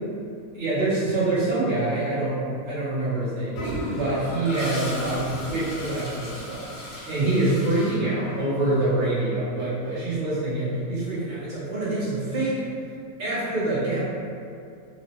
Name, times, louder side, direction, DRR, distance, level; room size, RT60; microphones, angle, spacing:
voice 1, 0.5-12.6 13.2-14.0, right 2 dB, 25° right, -11 dB, 0.7 m, -26 dB
Toilet flush, 3.5-8.6, equal, 75° left, 1.2 m, -35 dB
3.0 x 2.0 x 2.9 m, 2.5 s
omnidirectional pair, 1.5 m